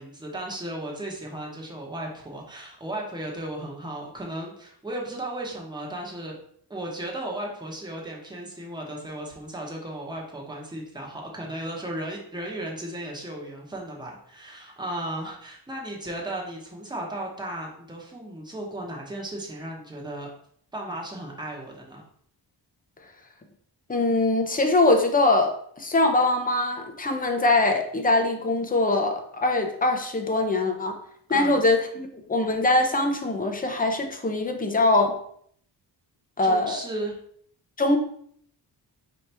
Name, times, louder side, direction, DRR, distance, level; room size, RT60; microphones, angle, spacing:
voice 1, 0.0-6.4 6.7-20.3 20.7-22.0 31.3-31.6 36.4-37.2, right 1 dB, 10° right, -2 dB, 1.0 m, -35 dB
voice 2, 23.9-31.0 31.3-35.2 36.4-36.8 37.8-38.0, left 2 dB, 20° left, 4 dB, 0.6 m, -22 dB
4.8 x 2.9 x 3.3 m, 0.63 s
wide cardioid pair, 125°, 42 cm